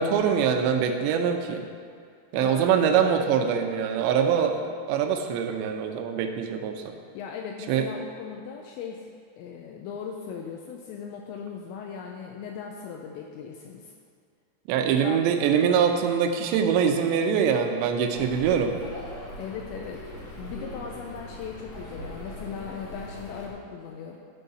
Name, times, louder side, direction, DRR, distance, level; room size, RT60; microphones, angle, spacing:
voice 1, 0.0-1.6 2.3-6.8 7.7-7.9 14.7-18.8, right 7 dB, 80° right, 4 dB, 2.6 m, -23 dB
voice 2, 2.3-2.7 7.1-9.1 9.4-13.9 14.8-15.2 19.4-20.1 20.4-24.2, left 6 dB, 85° left, 1 dB, 2.6 m, -38 dB
sound 1, 18.1-23.5, equal, 70° left, 1.8 m, -40 dB
12.0 x 4.6 x 5.5 m, 2.2 s
omnidirectional pair, 5.7 m